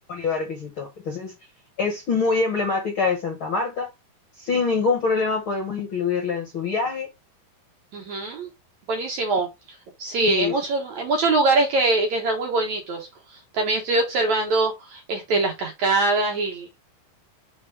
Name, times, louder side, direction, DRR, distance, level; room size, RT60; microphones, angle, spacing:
voice 1, 0.1-1.3 1.8-3.9 4.3-7.1 10.2-10.5, left 4 dB, 50° left, 1.6 m, -25 dB
voice 2, 7.9-8.5 8.9-9.5 10.0-16.8, right 3 dB, 60° right, 2.0 m, -23 dB
5.9 x 5.2 x 3.6 m
omnidirectional pair, 4.6 m